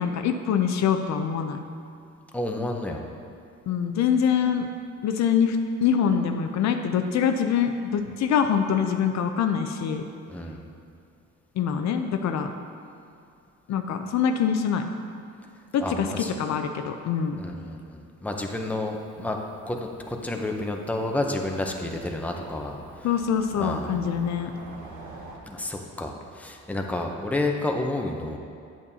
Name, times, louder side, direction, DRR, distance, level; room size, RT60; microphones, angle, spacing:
voice 1, 0.0-1.6 3.7-4.7 5.0-10.0 11.6-12.5 13.7-14.8 15.7-17.4 23.0-24.5, left 7 dB, 65° left, 6 dB, 0.5 m, -24 dB
voice 2, 2.3-3.0 10.3-10.6 15.8-16.3 17.4-19.4 19.7-22.8 23.6-24.0 25.5-28.4, left 2 dB, 5° left, 2 dB, 0.6 m, -30 dB
Cricket / Motor vehicle (road), 18.3-25.4, right 2 dB, 70° right, 1.1 m, -47 dB
8.4 x 7.1 x 2.7 m, 2.5 s
cardioid pair, 90°, 30 cm